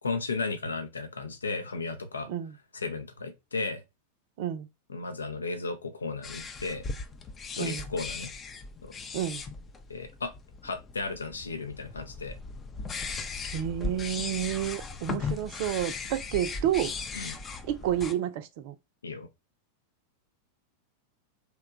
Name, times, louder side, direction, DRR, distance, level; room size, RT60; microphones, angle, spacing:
voice 1, 0.0-2.3 2.7-3.8 4.9-6.8 7.6-8.3 8.8-8.9 9.9-10.3 10.6-12.4 17.1-17.4 19.0-19.3, left 3 dB, 75° left, 0.5 m, -34 dB
voice 2, 4.4-4.7 7.6-7.8 9.1-9.4 13.5-16.9 17.6-18.8, right 11 dB, 50° right, 0.4 m, -30 dB
sound 1, 6.2-18.1, left 4 dB, 20° left, 0.5 m, -38 dB
2.9 x 2.2 x 3.6 m
figure-of-eight pair, 90°, 0 cm